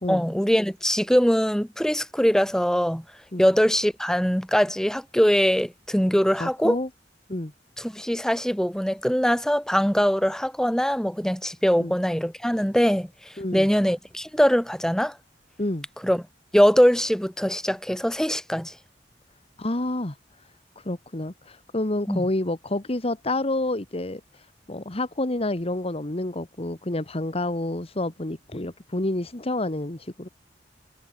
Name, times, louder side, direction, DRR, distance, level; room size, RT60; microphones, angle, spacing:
voice 1, 0.1-3.0 3.4-6.8 7.8-13.1 13.5-15.2 16.0-16.2 16.5-18.7 22.1-22.3, equal, 5° left, 2.1 m, -22 dB
voice 2, 6.4-6.9 7.3-7.5 11.8-11.9 13.4-13.7 15.6-15.9 19.6-20.1 20.8-24.2 24.7-30.3, left 1 dB, 35° left, 1.5 m, -28 dB
head